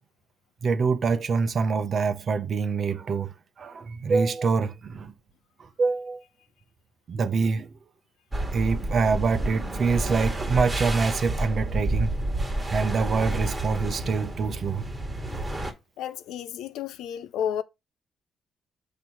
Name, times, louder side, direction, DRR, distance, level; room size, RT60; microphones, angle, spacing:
voice 1, 0.6-5.1 5.8-6.2 7.1-7.7 8.5-12.2 12.7-14.9, right 4 dB, 50° right, 0.7 m, -25 dB
sound 1, 8.3-15.7, right 1 dB, 15° right, 1.6 m, -30 dB
voice 2, 16.0-17.6, left 9 dB, 85° left, 0.5 m, -31 dB
6.1 x 2.9 x 5.7 m
cardioid pair, 90°, 0 cm